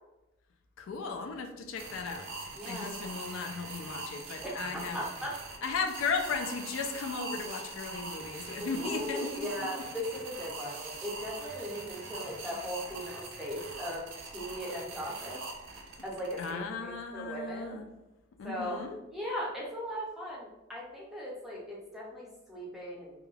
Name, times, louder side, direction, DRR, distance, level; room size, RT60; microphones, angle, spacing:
voice 1, 0.8-2.3 2.6-5.0 5.6-9.7 16.4-17.8 18.4-19.0, left 5 dB, 70° left, 5 dB, 0.3 m, -36 dB
sound 1, 1.8-16.5, right 3 dB, 65° right, 0.5 m, -42 dB
voice 2, 2.5-2.9 4.4-5.6 8.6-15.4 16.0-17.8 18.4-18.8 19.1-23.3, equal, ahead, -4 dB, 0.6 m, -38 dB
2.3 x 2.2 x 3.2 m, 0.98 s
head